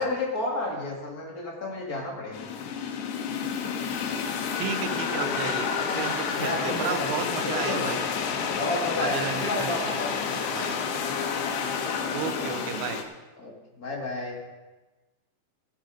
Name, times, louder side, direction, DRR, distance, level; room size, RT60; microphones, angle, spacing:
voice 1, 0.0-2.5 5.2-5.4 5.9-6.0 6.3-7.1 7.4-7.9 8.6-10.5 12.2-12.6 13.4-14.4, left 2 dB, 30° left, -1 dB, 1.7 m, -32 dB
sound 1, 2.3-13.0, left 6 dB, 70° left, 3.1 m, -30 dB
voice 2, 4.6-8.0 9.0-10.9 12.1-13.0, right 8 dB, 75° right, 8 dB, 2.2 m, -34 dB
16.5 x 10.5 x 5.0 m, 1.2 s
omnidirectional pair, 5.5 m